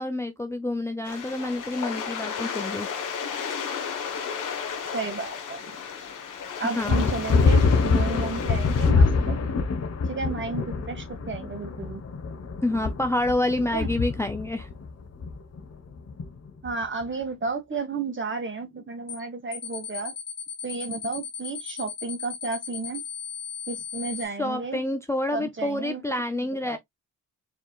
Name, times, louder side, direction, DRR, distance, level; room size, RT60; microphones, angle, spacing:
voice 1, 0.0-2.9 6.8-7.1 12.6-14.7 24.2-26.8, left 1 dB, 10° left, 0.6 m, -28 dB
sound 1, 1.0-8.9, left 6 dB, 70° left, 1.4 m, -34 dB
voice 2, 4.9-5.8 6.6-9.5 10.1-12.0 13.7-13.9 16.6-20.1 20.6-23.0 23.7-24.8 25.3-26.0 26.6-26.8, right 4 dB, 35° right, 2.0 m, -32 dB
sound 2, 6.9-16.8, left 4 dB, 50° left, 1.2 m, -24 dB
sound 3, 19.1-19.3 19.5-24.3, left 7 dB, 35° left, 1.7 m, -36 dB
4.8 x 3.5 x 2.4 m
supercardioid pair, 55°, 32 cm